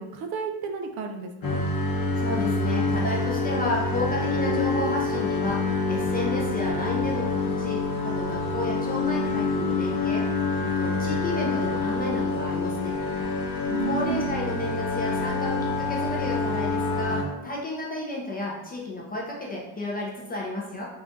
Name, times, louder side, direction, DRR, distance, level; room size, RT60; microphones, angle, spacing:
voice 1, 0.0-1.6 13.6-14.3, right 5 dB, 55° right, 5 dB, 0.5 m, -32 dB
sound 1, 1.4-17.2, left 3 dB, 50° left, 0.7 m, -26 dB
voice 2, 2.2-10.5 10.8-13.3 13.8-20.9, left 2 dB, 20° left, -3 dB, 0.3 m, -32 dB
3.6 x 2.3 x 3.8 m, 1.0 s
cardioid pair, 160°, 46 cm